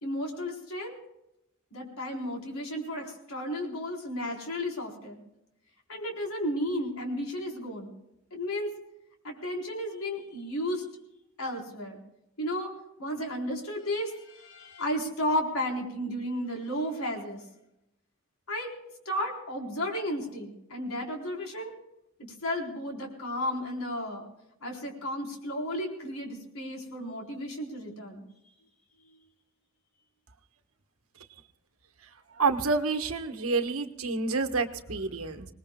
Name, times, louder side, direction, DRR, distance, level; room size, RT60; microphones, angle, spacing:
voice 1, 0.0-1.0 1.7-5.2 5.9-7.9 8.3-8.7 9.2-10.8 11.4-12.0 12.4-12.7 13.0-17.4 18.5-18.7 19.1-21.7 22.2-24.3 24.6-28.3, equal, 85° left, 1 dB, 4.1 m, -33 dB
voice 2, 32.4-35.5, right 4 dB, 85° right, 7 dB, 1.4 m, -28 dB
26.0 x 20.0 x 2.3 m, 0.85 s
head